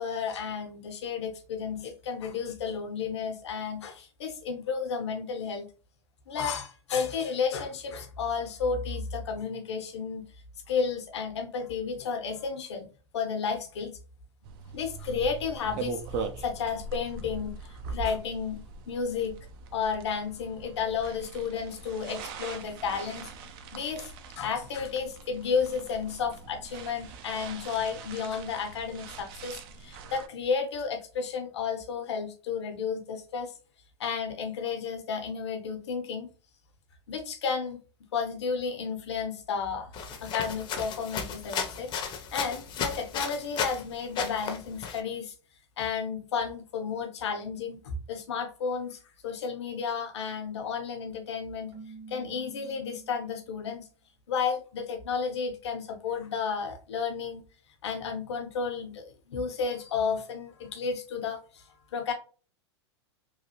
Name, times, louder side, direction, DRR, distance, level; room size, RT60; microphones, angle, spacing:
voice 1, 0.0-5.7 6.3-10.3 10.7-12.9 13.1-14.0 14.7-19.4 19.7-23.3 23.7-33.5 34.0-36.3 37.1-37.8 38.1-41.9 42.3-45.3 45.8-51.7 52.1-53.9 54.3-57.4 57.8-62.1, left 6 dB, 75° left, 5 dB, 0.8 m, -32 dB
sound 1, 14.4-30.3, right 5 dB, 55° right, 0.5 m, -41 dB
sound 2, 39.9-43.8 44.1-45.0, left 6 dB, 35° left, 0.6 m, -34 dB
Keyboard (musical), 51.7-53.7, right 4 dB, 35° right, 1.1 m, -48 dB
3.1 x 2.4 x 2.8 m, 0.37 s
hypercardioid pair, 105°, 14 cm